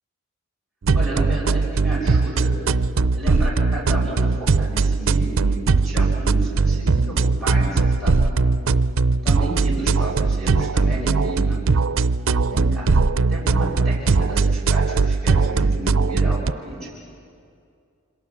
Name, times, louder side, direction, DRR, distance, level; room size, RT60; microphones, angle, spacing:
sound 1, 0.8-16.5, right 4 dB, 70° right, 0.5 m, -20 dB
voice 1, 0.9-2.5 3.1-8.5 9.2-11.6 12.5-12.9 13.3-16.9, right 1 dB, ahead, -5 dB, 5.6 m, -32 dB
27.5 x 26.0 x 7.1 m, 2.4 s
head